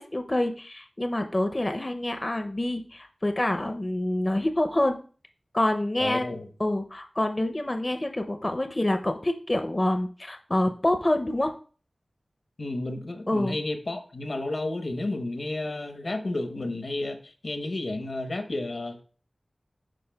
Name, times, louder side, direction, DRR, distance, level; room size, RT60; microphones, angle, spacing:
voice 1, 0.0-5.0 5.5-6.3 6.6-11.5 13.3-13.6, left 1 dB, 30° left, 6 dB, 0.5 m, -27 dB
voice 2, 6.0-6.5 12.6-19.0, left 2 dB, 70° left, 7 dB, 0.8 m, -32 dB
11.0 x 4.1 x 2.2 m, 0.40 s
wide cardioid pair, 50°, 0 cm